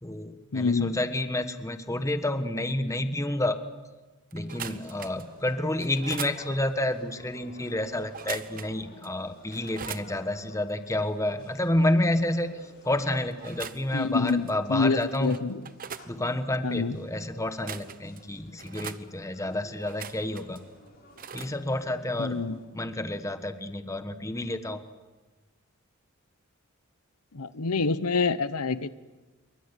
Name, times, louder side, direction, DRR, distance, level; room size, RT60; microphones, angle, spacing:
voice 1, 0.0-3.6 4.3-15.4 16.1-20.6 21.3-22.4 22.7-24.8, left 1 dB, 15° left, 9 dB, 1.3 m, -29 dB
voice 2, 0.5-1.0 13.9-15.6 16.6-17.0 22.2-22.5 27.3-28.9, left 4 dB, 85° left, 14 dB, 1.0 m, -27 dB
sound 1, 4.3-5.3 5.8-6.4 8.1-8.8 9.0-9.1 9.5-10.1 13.3-13.9 14.3-14.5 15.0-16.1 17.4-18.2 18.6-19.0 19.8-20.6 21.2-21.5, right 8 dB, 40° right, 0.9 m, -40 dB
sound 2, 4.7-22.7, left 1 dB, 40° left, 6.4 m, -53 dB
27.5 x 23.5 x 8.3 m, 1.2 s
head